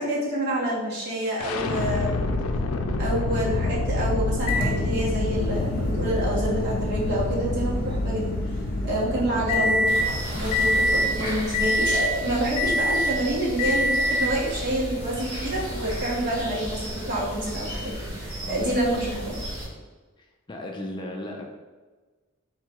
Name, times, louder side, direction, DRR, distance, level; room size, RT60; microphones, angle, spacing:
voice 1, 0.0-2.2 3.0-8.4 8.8-10.0 10.3-19.4, right 1 dB, 55° right, -7 dB, 1.4 m, -28 dB
sound 1, 1.4-13.3, left 2 dB, 85° left, 0.4 m, -28 dB
Microwave oven, 4.5-10.1 10.5-11.1 11.5-12.2 12.6-13.2 13.6-14.4 15.4-15.5 17.5-17.6, left 1 dB, 45° left, 0.9 m, -26 dB
sound 2, 9.9-19.7, equal, 25° right, 1.4 m, -33 dB
voice 2, 18.4-18.7 20.2-21.5, left 1 dB, 20° left, 1 dB, 0.4 m, -37 dB
3.8 x 2.3 x 4.5 m, 1.3 s
head